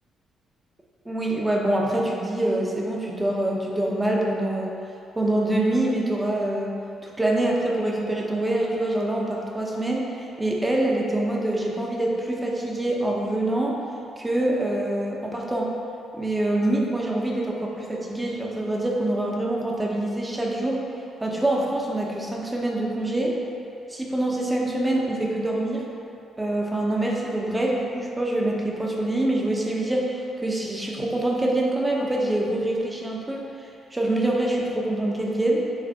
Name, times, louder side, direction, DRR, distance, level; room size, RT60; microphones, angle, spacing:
voice 1, 1.0-4.7 5.1-6.7 7.0-13.8 14.2-15.7 16.1-20.8 21.2-23.4 23.9-25.8 26.4-35.7, right 1 dB, 15° right, -2 dB, 1.0 m, -25 dB
6.9 x 3.3 x 4.2 m, 2.7 s
cardioid pair, 90°, 0 cm